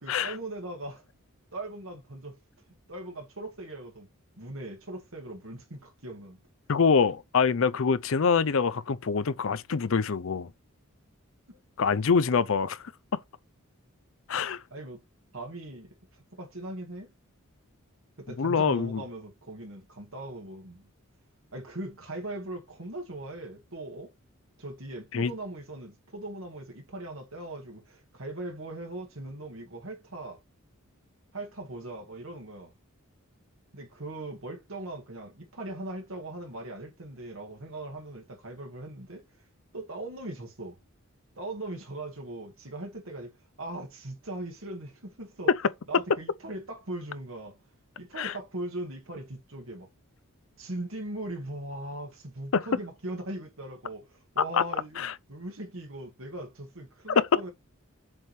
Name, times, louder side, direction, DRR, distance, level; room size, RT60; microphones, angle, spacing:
voice 1, 0.0-1.0 1.5-2.4 2.9-4.1 4.4-6.4 11.5-11.6 14.7-15.0 15.3-17.1 18.2-20.9 21.5-24.1 24.6-30.4 31.3-32.7 33.7-39.3 39.7-40.8 41.4-45.5 45.9-47.6 48.0-49.9 50.6-57.5, right 1 dB, 65° right, 2.1 m, -40 dB
voice 2, 6.7-10.5 11.8-12.9 14.3-14.6 18.4-19.0 25.1-25.3 45.5-45.6 48.2-48.3 52.5-52.6 55.0-55.1, left 5 dB, 65° left, 0.5 m, -25 dB
7.5 x 3.5 x 4.4 m
head